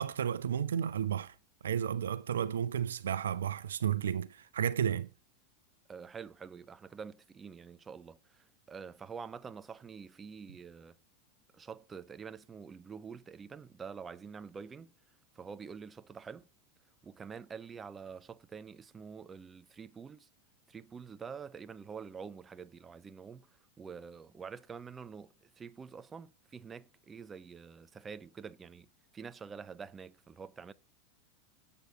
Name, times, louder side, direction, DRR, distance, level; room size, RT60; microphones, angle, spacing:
voice 1, 0.0-1.4 1.6-5.1, right 9 dB, 75° right, 0.5 m, -32 dB
voice 2, 5.9-11.0 11.5-14.9 15.3-16.5 17.0-20.3 20.7-23.5 23.8-28.9 29.1-30.7, right 6 dB, 20° right, 0.6 m, -47 dB
8.1 x 6.8 x 8.1 m
figure-of-eight pair, 90°, 0 cm